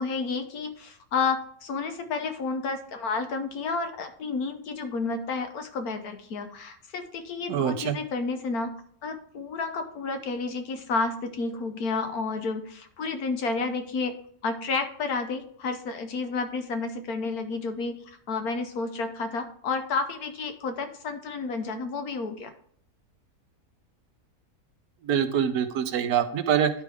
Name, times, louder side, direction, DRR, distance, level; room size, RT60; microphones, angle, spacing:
voice 1, 0.0-8.7 9.0-14.1 14.4-22.5, left 4 dB, 90° left, 7 dB, 1.5 m, -31 dB
voice 2, 7.5-8.0 25.0-26.7, right 8 dB, 85° right, 9 dB, 1.3 m, -24 dB
11.5 x 4.7 x 3.5 m, 0.62 s
omnidirectional pair, 1.5 m